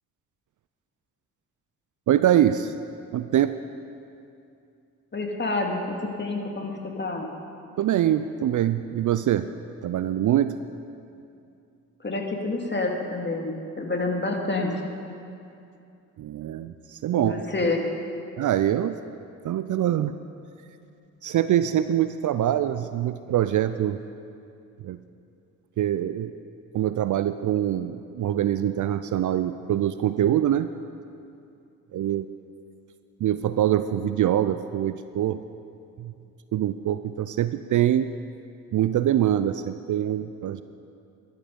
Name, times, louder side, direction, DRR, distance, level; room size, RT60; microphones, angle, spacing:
voice 1, 2.1-2.7 3.1-3.6 7.8-9.5 9.8-10.6 16.2-17.4 18.4-19.0 19.4-20.1 21.2-24.0 24.8-25.0 25.8-26.3 26.7-30.7 31.9-32.3 33.2-35.4 36.0-36.1 36.5-38.1 38.7-40.6, right 11 dB, 45° right, 11 dB, 0.5 m, -24 dB
voice 2, 5.1-7.3 12.0-14.8 17.1-17.9, left 2 dB, 25° left, 1 dB, 2.3 m, -28 dB
13.5 x 11.5 x 5.3 m, 2.6 s
hypercardioid pair, 45°, 42 cm